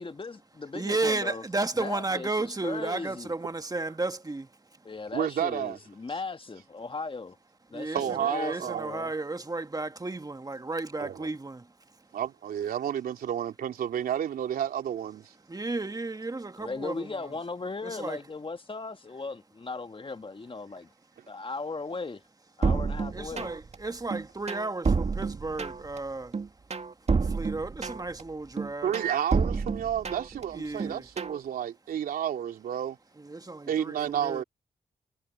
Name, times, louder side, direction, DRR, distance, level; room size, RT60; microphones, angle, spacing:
voice 1, 0.0-1.4 1.8-3.3 4.8-7.4 7.7-9.1 16.6-20.9 21.3-22.2 22.6-23.5, left 3 dB, 35° left, 1.9 m, -37 dB
voice 2, 0.7-4.5 7.7-11.7 15.5-17.1 17.8-18.2 23.1-26.4 27.0-28.9 30.5-31.1 33.2-34.4, right 3 dB, 25° right, 2.0 m, -33 dB
voice 3, 5.1-5.8 7.9-9.1 11.0-11.3 12.1-15.3 28.8-33.0 33.7-34.4, right 9 dB, 75° right, 3.5 m, -31 dB
sound 1, 22.6-23.8 24.1-26.0 26.3-28.2 28.6-30.4 30.8-31.4, right 4 dB, 45° right, 2.3 m, -29 dB
hypercardioid pair, 40°, 15 cm